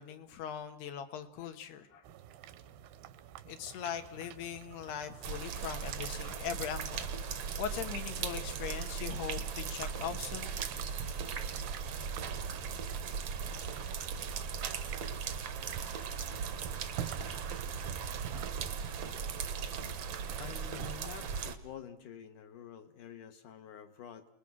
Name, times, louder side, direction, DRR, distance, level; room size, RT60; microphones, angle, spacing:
voice 1, 0.0-2.0 3.5-7.1 7.6-10.6, left 8 dB, 80° left, 8 dB, 3.6 m, -40 dB
sound 1, 2.0-21.5, right 10 dB, 80° right, 3.0 m, -49 dB
sound 2, 5.2-21.6, right 6 dB, 65° right, 1.6 m, -38 dB
voice 2, 20.3-24.3, left 8 dB, 65° left, 7 dB, 2.3 m, -48 dB
28.5 x 21.0 x 6.2 m, 0.65 s
omnidirectional pair, 4.7 m